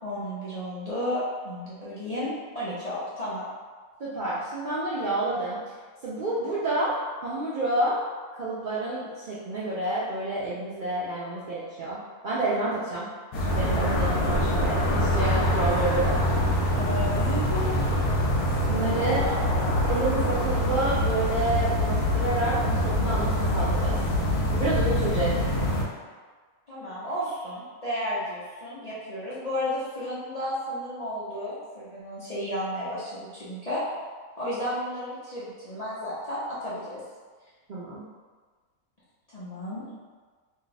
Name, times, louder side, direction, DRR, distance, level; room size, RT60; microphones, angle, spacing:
voice 1, 0.0-3.4 16.7-17.9 19.0-19.5 26.7-33.8 34.4-37.0 39.3-39.9, left 1 dB, 45° left, -11 dB, 0.5 m, -33 dB
voice 2, 4.0-5.6 6.0-8.0 8.3-13.1 13.5-16.1 18.7-19.2 19.9-24.0 24.5-25.4 37.7-38.0, right 2 dB, 85° right, -8 dB, 0.4 m, -29 dB
sound 1, 13.3-25.8, equal, 75° left, 1.1 m, -25 dB
2.7 x 2.2 x 3.9 m, 1.5 s
omnidirectional pair, 1.5 m